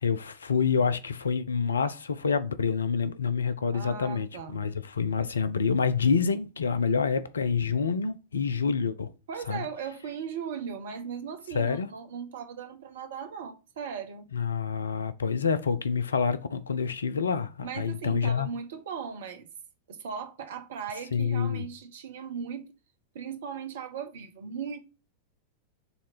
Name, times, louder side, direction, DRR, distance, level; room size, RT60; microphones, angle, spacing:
voice 1, 0.0-9.1 9.5-9.6 11.5-11.9 14.3-18.5 21.1-21.6, left 5 dB, 70° left, 0.6 m, -27 dB
voice 2, 3.7-4.6 9.3-14.3 17.6-19.5 19.9-22.7 23.1-24.8, right 7 dB, 60° right, 1.2 m, -38 dB
7.0 x 3.3 x 5.8 m
figure-of-eight pair, 90°, 0 cm